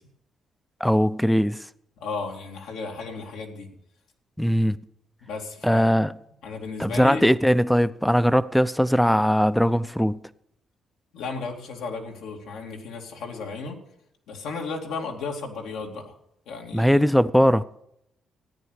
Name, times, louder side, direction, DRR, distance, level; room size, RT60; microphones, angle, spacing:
voice 1, 0.8-1.6 4.4-4.8 5.6-6.1 6.8-10.2 16.7-17.6, equal, ahead, 0.6 m, -20 dB
voice 2, 2.0-3.7 5.2-5.9 6.4-7.2 11.1-13.8 14.3-16.1 16.5-17.0, left 4 dB, 90° left, 2.6 m, -34 dB
14.0 x 9.7 x 6.5 m
cardioid pair, 90°, 0 cm